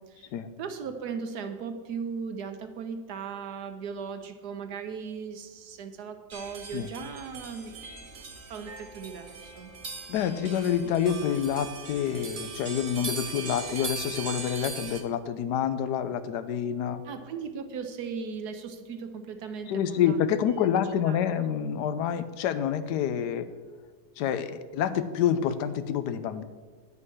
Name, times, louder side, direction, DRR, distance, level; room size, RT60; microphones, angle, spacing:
voice 1, 0.0-0.3 0.6-9.7 17.0-20.2 20.5-21.5, right 6 dB, 75° right, 7 dB, 1.4 m, -38 dB
sound 1, 6.3-15.0, right 4 dB, 40° right, 0.8 m, -39 dB
voice 2, 10.1-17.0 19.7-23.5 24.2-26.4, left 9 dB, 85° left, 12 dB, 1.2 m, -27 dB
9.7 x 5.5 x 6.2 m, 1.4 s
omnidirectional pair, 1.8 m